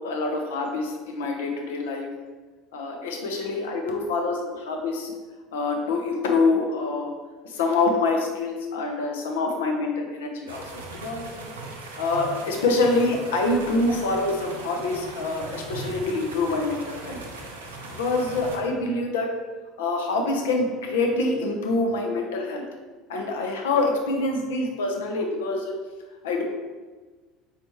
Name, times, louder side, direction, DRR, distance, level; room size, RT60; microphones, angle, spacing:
voice 1, 0.0-2.1 2.7-5.1 5.5-7.1 7.4-10.6 11.0-11.4 12.0-17.2 18.0-19.3 19.8-22.6 23.1-25.7 26.2-26.4, left 3 dB, 75° left, 2 dB, 0.6 m, -25 dB
sound 1, 10.5-18.6, right 3 dB, 85° right, 0.5 m, -39 dB
4.3 x 3.2 x 3.0 m, 1.3 s
hypercardioid pair, 65°, 0 cm